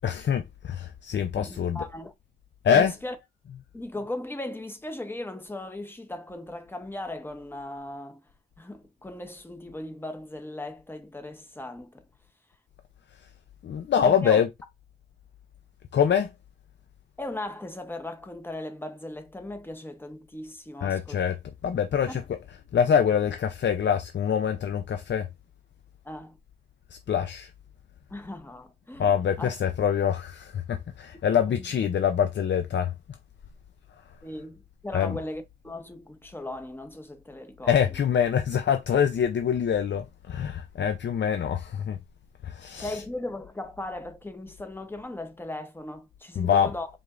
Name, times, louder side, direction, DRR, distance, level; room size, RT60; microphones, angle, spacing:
voice 1, 0.0-1.9 2.6-2.9 13.2-13.3 13.6-14.5 15.9-16.3 20.8-22.4 22.7-25.3 26.9-27.5 29.0-32.9 34.9-35.2 37.6-42.0 42.4-43.0 46.4-46.7, left 8 dB, 90° left, 0.5 m, -25 dB
voice 2, 1.4-2.1 2.7-3.1 3.7-8.2 8.6-12.1 14.0-14.4 17.2-21.2 22.1-22.2 26.0-26.4 28.1-29.1 29.4-29.5 31.5-31.7 34.2-37.8 42.7-46.9, left 1 dB, 10° left, 0.7 m, -37 dB
4.9 x 3.5 x 2.4 m
wide cardioid pair, 120°, 18 cm